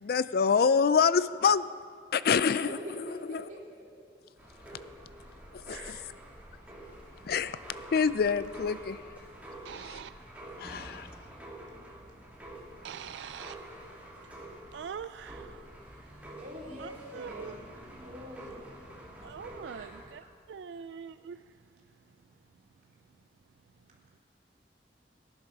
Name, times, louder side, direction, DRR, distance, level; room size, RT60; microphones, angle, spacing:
voice 1, 0.0-1.7 2.1-2.8 3.3-3.4 5.5-6.0 7.2-9.0 9.7-10.0 10.6-11.1, left 6 dB, 60° left, 15 dB, 0.4 m, -26 dB
voice 2, 2.5-3.8 16.4-17.7 18.0-18.6 19.7-20.0, equal, 45° right, -4 dB, 3.3 m, -44 dB
sound 1, 4.4-20.1, right 1 dB, 10° right, 2.6 m, -47 dB
voice 3, 5.7-6.1 9.6-10.1 12.8-13.6 14.7-15.6 16.8-17.5 19.2-20.2 20.5-21.4, right 7 dB, 85° right, 12 dB, 0.3 m, -43 dB
17.5 x 10.5 x 6.0 m, 2.1 s
head